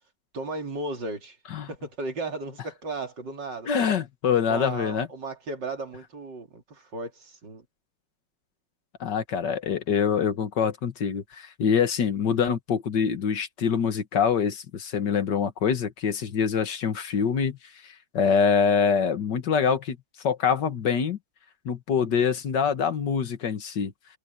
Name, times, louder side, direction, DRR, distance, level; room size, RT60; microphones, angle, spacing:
voice 1, 0.3-1.4 1.7-3.7 4.5-7.7, right 2 dB, 80° right, 3.6 m, -35 dB
voice 2, 3.7-5.1 9.0-17.6 17.8-20.0 20.2-21.2 21.7-24.2, left 7 dB, 75° left, 2.1 m, -25 dB
omnidirectional pair, 1.9 m